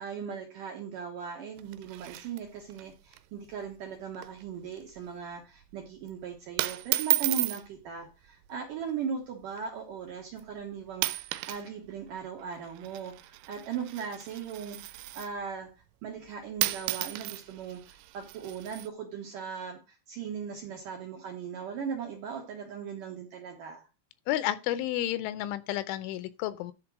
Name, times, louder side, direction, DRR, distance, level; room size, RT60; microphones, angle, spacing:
voice 1, 0.0-15.7 16.0-23.9, right 6 dB, 65° right, 2.1 m, -38 dB
sound 1, 1.6-2.8 3.1-3.2 3.5-3.8 4.1-4.5 4.8-5.1 5.8-6.1 6.6-7.6 8.6-8.9 9.6-9.7 10.4-10.6 10.9-11.7 11.9-15.4 16.3-16.4 16.6-18.9, right 18 dB, 85° right, 3.1 m, -33 dB
voice 2, 24.3-26.7, left 13 dB, 85° left, 3.2 m, -31 dB
11.0 x 4.4 x 6.2 m
omnidirectional pair, 5.4 m